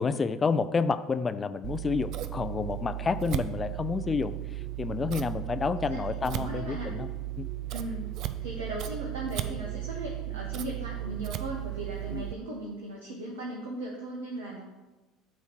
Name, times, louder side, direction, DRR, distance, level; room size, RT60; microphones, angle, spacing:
voice 1, 0.0-4.4 4.8-7.1 7.4-7.5 12.1-12.3, left 5 dB, 30° left, 12 dB, 0.5 m, -29 dB
Scissors, 1.6-12.3, right 14 dB, 60° right, 0.5 m, -35 dB
voice 2, 6.3-6.9 7.7-8.0 8.4-14.7, right 1 dB, 80° right, -2 dB, 1.0 m, -38 dB
8.3 x 3.2 x 6.2 m, 1.1 s
hypercardioid pair, 65°, 0 cm